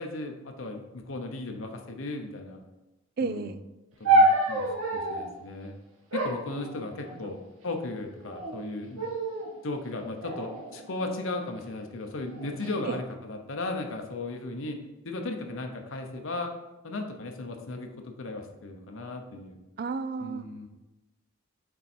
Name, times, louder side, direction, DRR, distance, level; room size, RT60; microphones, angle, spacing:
voice 1, 0.0-2.6 3.2-3.6 4.0-5.8 6.1-9.1 9.6-14.8 15.0-16.5 16.8-19.6 20.2-20.7, left 2 dB, 70° left, 3 dB, 0.9 m, -36 dB
voice 2, 3.2-3.6 7.2-7.4 12.9-13.0 19.8-20.7, right 4 dB, 45° right, 13 dB, 0.3 m, -33 dB
sound 1, 4.0-5.3 6.1-7.3 8.1-8.6 9.0-9.5 10.2-11.5 12.3-12.7, right 1 dB, 85° right, 1.6 m, -27 dB
6.8 x 4.6 x 4.4 m, 1.0 s
head